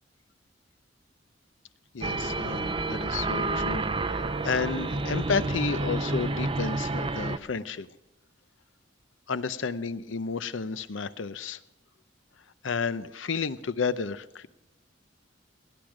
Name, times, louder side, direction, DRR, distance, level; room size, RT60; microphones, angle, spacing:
voice 1, 1.9-7.9 9.3-11.6 12.6-14.5, left 5 dB, 90° left, 14 dB, 0.7 m, -31 dB
sound 1, 2.0-7.4, right 2 dB, 30° right, 0.5 m, -29 dB
18.5 x 10.5 x 5.0 m, 0.94 s
head